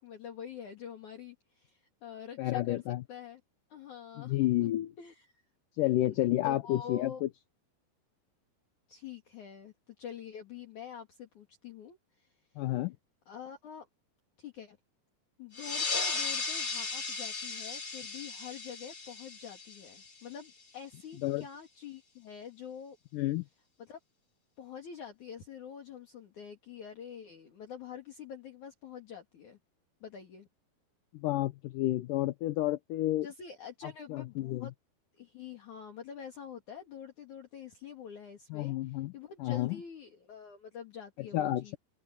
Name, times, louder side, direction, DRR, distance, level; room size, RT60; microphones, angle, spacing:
voice 1, 0.0-2.8 3.1-3.4 3.7-5.3 5.8-7.2 8.9-12.3 13.3-13.9 14.4-14.8 15.4-23.0 23.8-24.0 24.6-29.6 30.0-30.5 33.2-34.7 35.2-41.8, left 8 dB, 50° left, 3.5 m, -46 dB
voice 2, 2.4-3.0 4.2-4.9 5.8-7.3 12.6-13.0 21.2-21.4 23.1-23.4 31.1-33.3 34.1-34.7 38.5-39.1 39.4-39.8 41.3-41.8, left 15 dB, 80° left, 2.0 m, -30 dB
sound 1, 15.5-20.6, left 4 dB, 20° left, 2.0 m, -36 dB
omnidirectional pair, 4.6 m